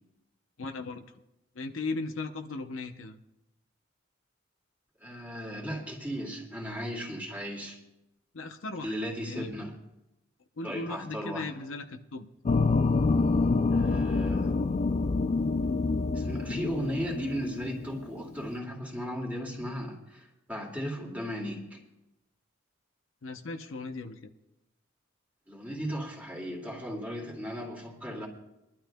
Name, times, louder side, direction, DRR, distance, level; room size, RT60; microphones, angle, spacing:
voice 1, 0.6-1.0 1.5-3.2 8.3-8.9 9.2-9.5 10.6-12.3 23.2-24.3, left 3 dB, 80° left, 6 dB, 0.7 m, -37 dB
voice 2, 5.0-7.8 8.8-9.7 10.6-11.5 13.7-14.5 16.1-21.8 25.5-28.3, equal, 10° right, -1 dB, 2.2 m, -36 dB
sound 1, 12.5-18.5, left 3 dB, 35° left, 0.3 m, -27 dB
23.0 x 12.0 x 2.2 m, 0.92 s
head